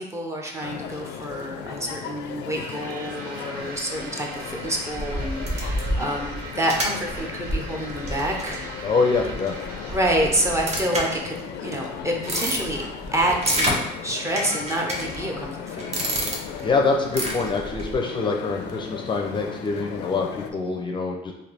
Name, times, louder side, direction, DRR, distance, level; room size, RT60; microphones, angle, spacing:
voice 1, 0.0-8.7 9.9-12.8 13.1-16.0 20.5-20.8, right 1 dB, 15° right, 0 dB, 0.7 m, -28 dB
sound 1, 0.6-20.5, left 8 dB, 85° left, 0.4 m, -37 dB
sound 2, 2.6-10.9, right 2 dB, 75° right, 1.1 m, -41 dB
sound 3, 4.6-11.5 12.0-13.8 14.4-15.4 15.8-16.7 17.1-17.9, right 1 dB, 40° right, 0.9 m, -29 dB
voice 2, 8.8-9.5 16.6-21.3, left 4 dB, 30° left, 1 dB, 0.5 m, -24 dB
3.3 x 2.7 x 4.0 m, 0.91 s
cardioid pair, 110°, 17 cm